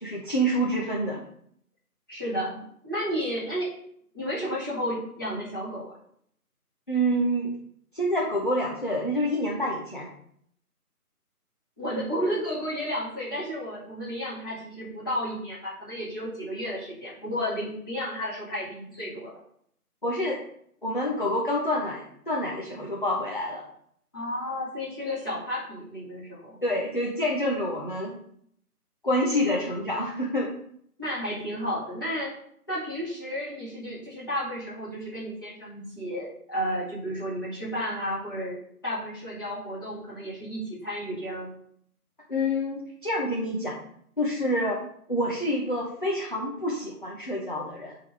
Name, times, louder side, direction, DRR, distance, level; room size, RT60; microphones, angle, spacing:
voice 1, 0.0-1.2 6.9-7.5 7.9-10.1 20.0-20.4 20.8-23.6 26.6-28.2 29.0-30.5 42.3-43.8 44.2-44.8 45.1-47.9, equal, 35° left, -3 dB, 0.8 m, -27 dB
voice 2, 2.1-2.6 2.8-3.7 4.1-6.0 11.8-19.3 24.1-26.5 29.2-29.6 31.0-32.3 32.7-38.6 38.8-41.5, equal, 15° left, -12 dB, 2.1 m, -32 dB
8.7 x 3.9 x 4.8 m, 0.67 s
figure-of-eight pair, 170°, 46 cm